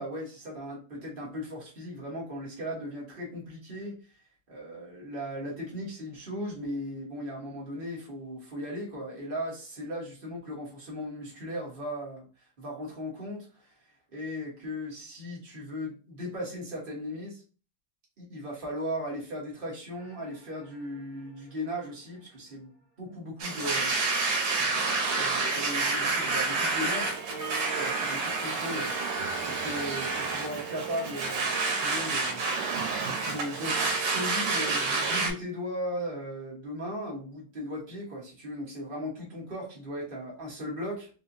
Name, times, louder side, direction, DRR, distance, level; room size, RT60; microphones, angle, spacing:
voice 1, 0.0-3.9 4.5-12.2 12.6-13.7 14.1-17.4 18.2-27.2 27.7-29.2 29.6-32.4 33.2-41.1, equal, 30° right, -3 dB, 1.2 m, -37 dB
sound 1, 20.0-22.0 24.7-30.7, right 2 dB, 25° left, 1.0 m, -45 dB
Domestic sounds home sounds, 23.4-35.3, right 3 dB, 85° right, 1.8 m, -29 dB
4.3 x 2.4 x 2.6 m, 0.36 s
omnidirectional pair, 2.4 m